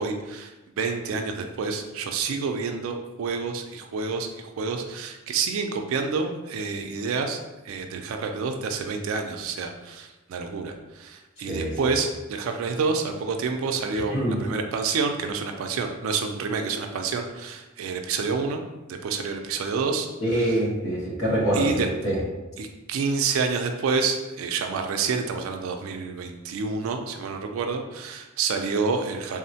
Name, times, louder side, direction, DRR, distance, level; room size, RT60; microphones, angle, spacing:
voice 1, 0.0-18.6 18.9-20.6 21.5-21.9 22.6-29.4, right 4 dB, 80° right, 5 dB, 0.3 m, -28 dB
voice 2, 11.5-11.9 14.1-14.3 20.2-22.2, right 1 dB, 80° left, -4 dB, 1.0 m, -25 dB
3.6 x 2.0 x 2.7 m, 1.1 s
head